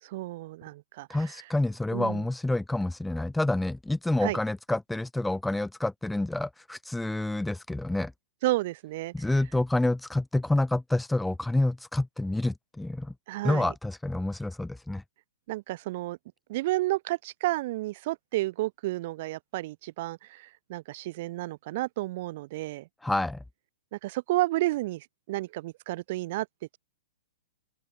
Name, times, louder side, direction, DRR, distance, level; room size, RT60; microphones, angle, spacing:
voice 1, 0.0-1.2 1.9-2.2 4.2-4.4 8.4-9.1 13.3-13.7 15.5-16.2 16.5-22.9 23.9-26.5, right 18 dB, 40° right, 6.2 m, -31 dB
voice 2, 1.1-8.1 9.1-13.1 13.4-15.0 23.0-23.4, left 2 dB, 5° left, 1.9 m, -28 dB
open air
hypercardioid pair, 170°, 0 cm